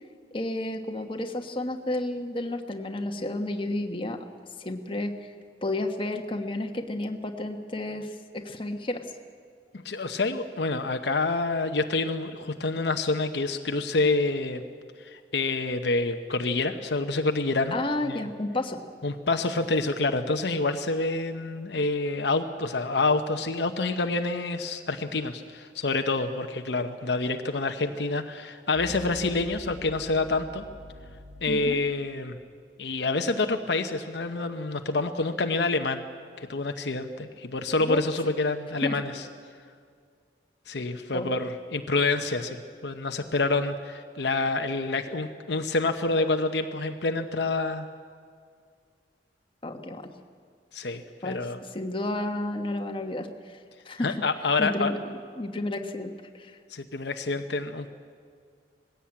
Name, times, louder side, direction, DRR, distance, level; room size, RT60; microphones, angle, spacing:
voice 1, 0.3-4.2 4.6-5.1 5.6-9.0 17.7-18.8 31.5-31.8 37.8-38.0 38.8-39.0 41.1-41.3 49.6-50.1 51.2-51.4 51.7-53.6 53.8-54.2 54.6-56.6, left 1 dB, 30° left, 4 dB, 1.3 m, -31 dB
voice 2, 9.7-14.6 15.0-17.8 18.1-18.2 19.0-30.6 31.4-32.4 32.8-36.0 36.4-39.1 40.7-47.9 50.7-51.6 54.0-54.9 56.7-57.9, left 3 dB, 65° left, 6 dB, 0.9 m, -27 dB
sound 1, 28.7-32.8, equal, 90° right, 3.9 m, -46 dB
20.0 x 16.0 x 8.7 m, 2.1 s
head